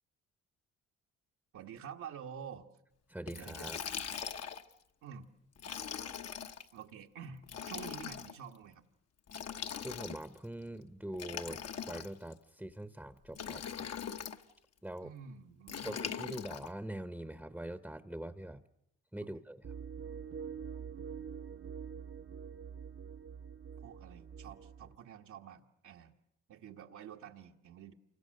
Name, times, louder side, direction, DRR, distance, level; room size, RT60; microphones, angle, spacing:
voice 1, 1.5-2.7 3.3-3.7 5.0-5.3 6.7-8.8 15.0-15.9 19.2-19.3 23.8-26.1 26.5-27.9, right 8 dB, 75° right, 0 dB, 1.6 m, -49 dB
voice 2, 3.1-3.8 9.8-13.6 14.8-15.1 15.8-18.6 19.1-19.6, right 1 dB, 5° right, 11 dB, 0.9 m, -43 dB
Liquid, 3.3-4.7 5.6-6.6 7.4-8.3 9.3-10.4 11.1-12.3 13.3-14.4 15.7-16.7, left 8 dB, 55° left, 1.3 m, -41 dB
sound 1, 19.6-25.0, right 7 dB, 45° right, 1.0 m, -45 dB
28.5 x 25.0 x 6.6 m, 0.80 s
cardioid pair, 90°, 30 cm